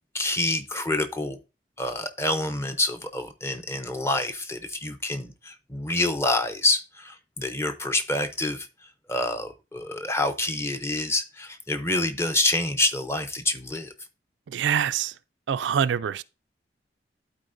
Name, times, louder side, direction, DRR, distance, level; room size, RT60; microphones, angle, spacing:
voice 1, 0.1-1.4 1.8-8.7 9.1-13.9, left 2 dB, 15° left, 0.6 m, -27 dB
voice 2, 14.5-15.1 15.5-16.2, right 8 dB, 80° right, 0.3 m, -25 dB
12.0 x 4.3 x 2.6 m
head